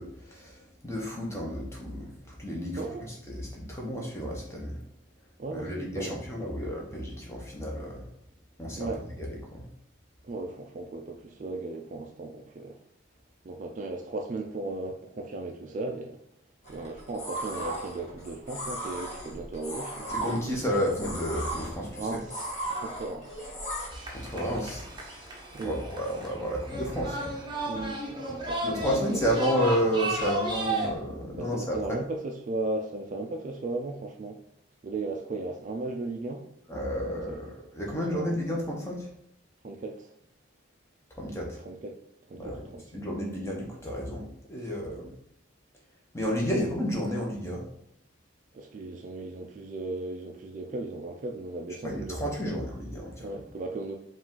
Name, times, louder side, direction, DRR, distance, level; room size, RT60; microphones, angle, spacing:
voice 1, 0.0-4.8 5.5-8.0 8.6-8.9 9.2-9.6 20.1-22.2 24.1-24.9 25.6-27.4 28.6-32.0 36.7-39.1 41.2-41.6 42.3-42.7 42.9-45.1 46.1-47.6 51.8-53.3, equal, 15° left, 0.8 m, -31 dB
voice 2, 5.4-6.2 8.8-9.0 10.2-12.8 13.4-16.2 16.7-20.5 22.0-23.5 25.5-25.8 27.6-29.0 31.4-34.4 34.8-36.5 37.1-37.4 37.8-38.4 39.6-40.1 41.6-42.0 42.3-43.0 44.9-45.0 48.5-52.6 53.2-54.0, right 2 dB, 40° right, 0.3 m, -36 dB
sound 1, 16.7-23.9, right 1 dB, 35° left, 1.3 m, -36 dB
sound 2, 23.9-30.9, right 1 dB, 25° right, 0.7 m, -34 dB
4.8 x 2.4 x 3.7 m
head